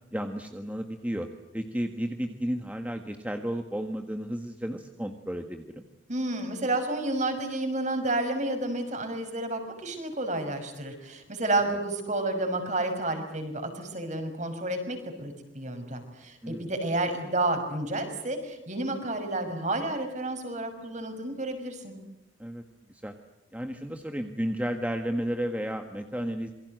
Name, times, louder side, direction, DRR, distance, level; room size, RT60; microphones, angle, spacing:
voice 1, 0.1-1.3 1.5-5.8 16.4-16.7 22.4-22.6 22.9-23.1 23.5-26.5, equal, 10° right, 5 dB, 1.6 m, -33 dB
voice 2, 6.1-21.9, right 2 dB, 40° right, 6 dB, 5.8 m, -30 dB
27.5 x 23.5 x 7.9 m, 0.91 s
head